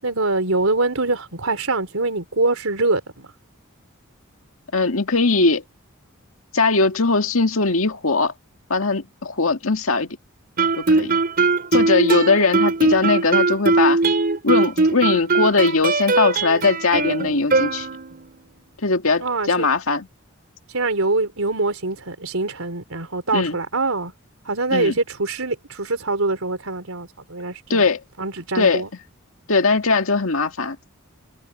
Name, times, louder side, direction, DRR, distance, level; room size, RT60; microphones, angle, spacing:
voice 1, 0.0-3.3 19.2-19.7 20.7-24.1 24.5-27.9 28.2-28.9, right 3 dB, 80° right, 4.0 m, -24 dB
voice 2, 4.7-5.6 6.5-8.3 8.7-10.1 10.8-11.1 11.7-14.0 14.4-17.9 18.8-20.1 23.3-23.6 24.7-24.9 27.7-28.0 28.5-28.8 29.5-30.8, left 3 dB, 70° left, 2.1 m, -20 dB
Guitar, 10.6-18.3, right 3 dB, 45° right, 5.1 m, -20 dB
head